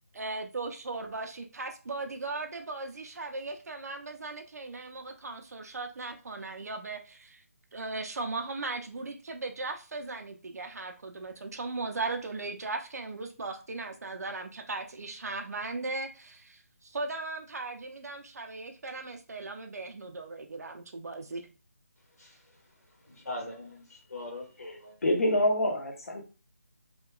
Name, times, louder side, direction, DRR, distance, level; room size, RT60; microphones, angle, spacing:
voice 1, 0.1-7.4 7.7-21.4, right 3 dB, 75° right, 4 dB, 0.4 m, -37 dB
voice 2, 22.0-25.0, left 2 dB, 75° left, -1 dB, 1.4 m, -43 dB
voice 3, 25.0-26.2, left 1 dB, 60° left, 2 dB, 0.8 m, -26 dB
2.8 x 2.2 x 2.2 m, 0.33 s
figure-of-eight pair, 165°, 9 cm